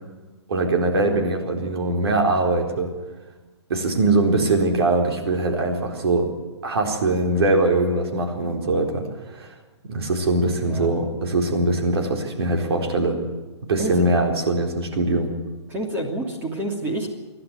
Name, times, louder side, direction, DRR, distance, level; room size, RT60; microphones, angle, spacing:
voice 1, 0.5-2.9 3.7-6.3 6.6-9.5 9.9-13.2 13.7-15.3, right 2 dB, 65° right, 3 dB, 4.2 m, -22 dB
voice 2, 13.8-14.1 15.7-17.1, right 1 dB, 15° right, 0 dB, 2.9 m, -28 dB
29.0 x 11.5 x 9.7 m, 1.2 s
hypercardioid pair, 150°, 15 cm